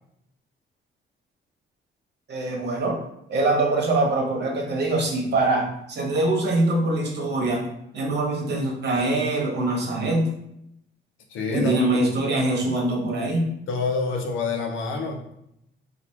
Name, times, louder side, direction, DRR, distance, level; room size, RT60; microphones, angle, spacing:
voice 1, 2.3-3.0 3.3-7.6 7.9-10.2 11.5-13.4, right 2 dB, 60° right, 0 dB, 1.3 m, -23 dB
voice 2, 11.3-12.0 13.7-15.3, left 4 dB, 85° left, 3 dB, 0.9 m, -27 dB
4.2 x 2.7 x 4.5 m, 0.79 s
cardioid pair, 90°, 20 cm